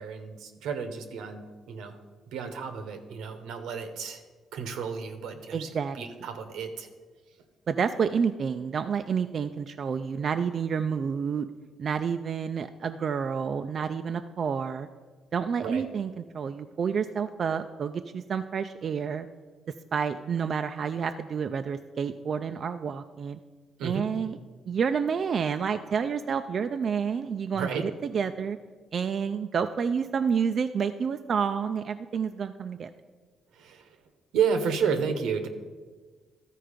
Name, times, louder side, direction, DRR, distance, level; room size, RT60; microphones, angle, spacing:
voice 1, 0.0-2.0 2.3-4.2 4.5-5.7 5.9-6.9 15.6-15.8 23.8-24.1 27.5-27.8 33.5-34.0 34.3-35.5, right 6 dB, 85° right, 7 dB, 1.0 m, -31 dB
voice 2, 5.5-6.0 7.7-11.5 11.8-14.9 15.3-19.3 19.9-23.4 23.8-24.4 24.7-28.6 28.9-32.9, right 6 dB, 50° right, 8 dB, 0.3 m, -29 dB
13.5 x 4.6 x 5.1 m, 1.4 s
cardioid pair, 90°, 0 cm